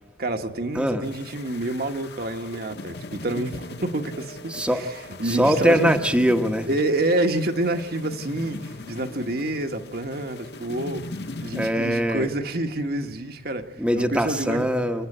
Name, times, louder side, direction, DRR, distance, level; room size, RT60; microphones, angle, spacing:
voice 1, 0.2-4.6 5.2-5.9 6.7-11.1 11.4-14.7, right 2 dB, 55° right, 5 dB, 1.4 m, -27 dB
sound 1, 1.0-11.7, left 2 dB, 60° left, 1.4 m, -39 dB
voice 2, 4.5-4.9 5.2-6.7 11.5-12.3 13.8-15.1, equal, 5° right, 4 dB, 1.0 m, -22 dB
28.5 x 9.6 x 9.9 m, 1.2 s
head